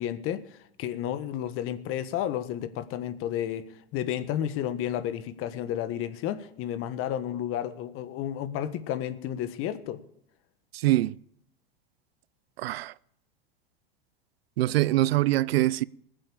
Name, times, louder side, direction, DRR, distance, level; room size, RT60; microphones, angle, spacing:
voice 1, 0.0-10.0, left 11 dB, 45° left, 1.4 m, -32 dB
voice 2, 10.7-11.2 12.6-12.9 14.6-15.8, right 16 dB, 75° right, 0.5 m, -24 dB
19.5 x 7.8 x 7.1 m
hypercardioid pair, 110°, 30 cm